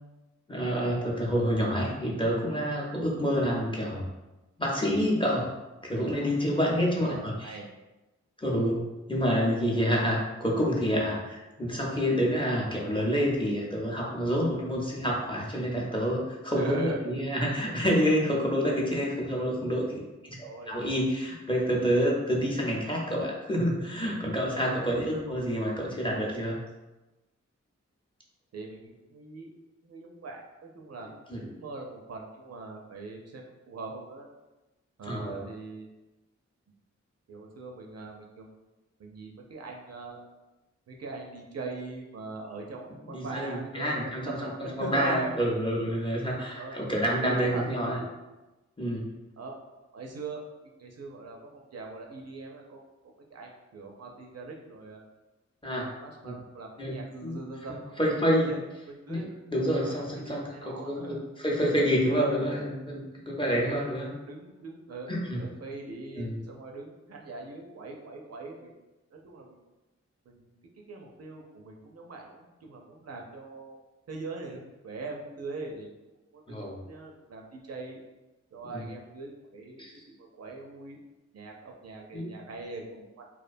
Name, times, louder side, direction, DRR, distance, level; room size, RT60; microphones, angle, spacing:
voice 1, 0.5-4.0 4.6-5.5 5.8-7.3 8.4-8.8 9.1-19.9 20.2-20.3 20.7-26.6 31.3-31.4 35.0-35.4 43.1-44.5 44.8-48.0 48.8-49.1 55.6-55.9 56.2-56.3 56.8-57.4 58.0-58.5 59.1-64.1 65.1-65.4 66.2-66.4 76.5-76.8 78.7-78.8 79.8-79.9 82.1-82.3, equal, 15° left, -3 dB, 0.6 m, -28 dB
voice 2, 7.0-7.7 9.3-9.4 16.5-17.0 17.6-17.7 19.9-20.1 20.4-20.9 24.8-25.3 28.5-29.5 29.8-31.1 31.5-34.3 35.0-35.9 37.3-38.5 39.0-40.2 40.9-44.5 44.8-45.4 46.6-46.7 47.2-48.1 49.4-49.6 49.9-50.4 50.8-52.8 53.3-55.0 55.6-58.1 58.5-58.6 58.9-59.3 59.8-61.2 64.3-68.7 69.1-69.5 70.3-73.8 74.1-75.9 76.3-76.6 76.9-78.0 78.5-81.0 81.3-83.2, right 3 dB, 60° right, 0 dB, 0.5 m, -41 dB
2.4 x 2.1 x 2.5 m, 1.1 s
cardioid pair, 45°, 29 cm